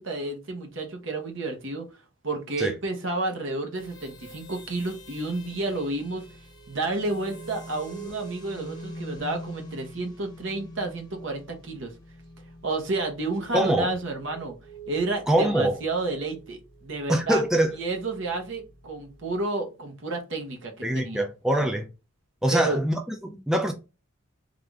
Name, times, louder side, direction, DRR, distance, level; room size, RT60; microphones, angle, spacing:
voice 1, 0.0-1.9 2.2-6.2 6.7-11.9 12.6-14.6 14.9-17.4 17.8-21.3 22.5-22.8, right 2 dB, 60° right, 1.0 m, -30 dB
sound 1, 3.7-19.4, right 1 dB, 20° left, 0.7 m, -45 dB
voice 2, 13.5-13.9 15.3-15.8 17.1-17.8 20.8-21.9 22.4-23.7, right 1 dB, 5° right, 0.3 m, -24 dB
3.5 x 2.5 x 3.3 m
head